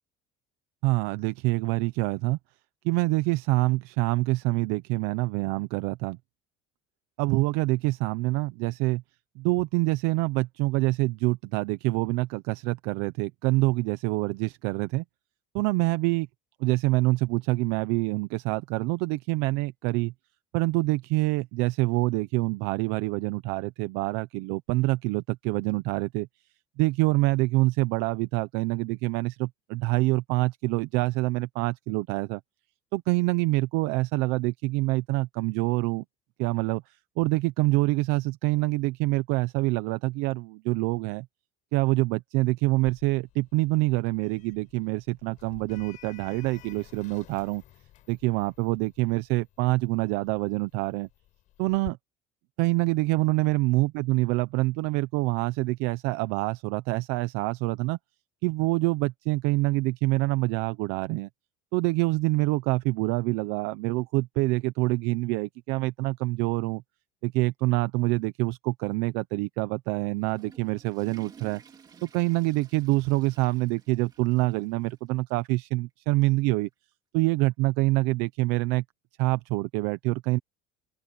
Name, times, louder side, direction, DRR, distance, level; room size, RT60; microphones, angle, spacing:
voice 1, 0.8-2.4 2.8-6.2 7.2-9.0 9.4-15.0 15.5-16.3 16.6-20.1 20.5-26.3 26.8-32.4 32.9-36.0 36.4-36.8 37.2-41.3 41.7-47.6 48.1-51.1 51.6-52.0 52.6-58.0 58.4-61.3 61.7-66.8 67.2-71.6 72.0-76.7 77.1-78.8 79.2-80.4, right 21 dB, 65° right, 0.7 m, -26 dB
Sliding door, 42.8-51.9, left 15 dB, 45° left, 6.0 m, -52 dB
Water / Toilet flush, 70.0-75.0 75.3-75.4 76.1-76.2 77.5-77.6, right 6 dB, 20° right, 2.3 m, -53 dB
open air
cardioid pair, 180°, 18 cm